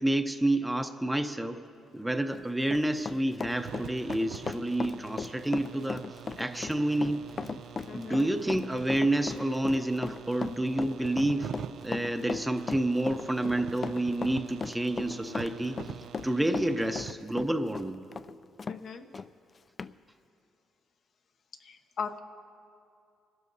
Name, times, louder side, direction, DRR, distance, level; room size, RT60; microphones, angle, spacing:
voice 1, 0.0-1.6 1.9-6.0 6.4-7.3 7.9-11.5 11.8-15.8 16.2-18.0, right 1 dB, 10° right, 7 dB, 0.7 m, -29 dB
Run, 2.1-18.8 19.1-19.3 19.8-19.9, left 5 dB, 40° left, 0.3 m, -38 dB
sound 1, 3.5-17.1, right 8 dB, 70° right, 0.4 m, -45 dB
voice 2, 7.9-8.3 18.7-19.1 21.6-22.2, left 6 dB, 60° left, 6 dB, 0.8 m, -39 dB
26.5 x 12.5 x 2.7 m, 2.5 s
cardioid pair, 90°, 0 cm